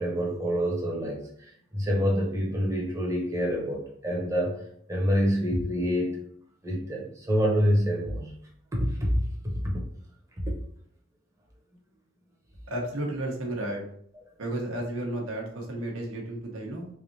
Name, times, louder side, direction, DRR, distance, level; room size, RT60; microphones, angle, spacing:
voice 1, 0.0-4.6 4.9-6.2 6.6-8.3 8.7-9.8 10.4-10.5, equal, 15° right, -2 dB, 0.9 m, -27 dB
voice 2, 12.7-13.8 14.4-16.9, right 1 dB, 85° right, 0 dB, 1.0 m, -32 dB
3.7 x 3.4 x 2.6 m, 0.65 s
head